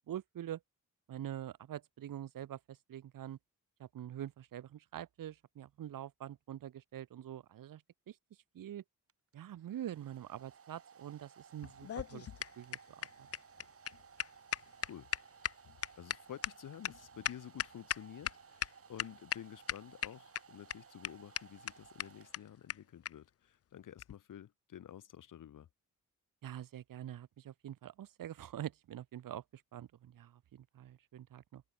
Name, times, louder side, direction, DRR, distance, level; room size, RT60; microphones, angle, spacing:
voice 1, 0.1-0.6 1.1-3.4 3.8-8.2 8.5-8.8 9.3-12.3 12.6-12.8 13.2-13.3 26.4-31.6, right 11 dB, 80° right, 2.1 m, -45 dB
Domestic sounds home sounds, 9.1-22.8, right 6 dB, 45° right, 6.8 m, -59 dB
sound 1, 11.6-18.3 18.6-18.7 19.0-19.4 19.7-20.4 20.7-20.8 21.0-21.1 21.4-21.5 21.7-21.8 22.0-22.1 22.3-22.4 22.7-22.8 23.1-23.2 24.0-24.1, left 10 dB, 45° left, 0.6 m, -37 dB
voice 2, 14.9-15.6 16.0-25.7, left 10 dB, 70° left, 2.5 m, -51 dB
open air
wide cardioid pair, 160°, 33 cm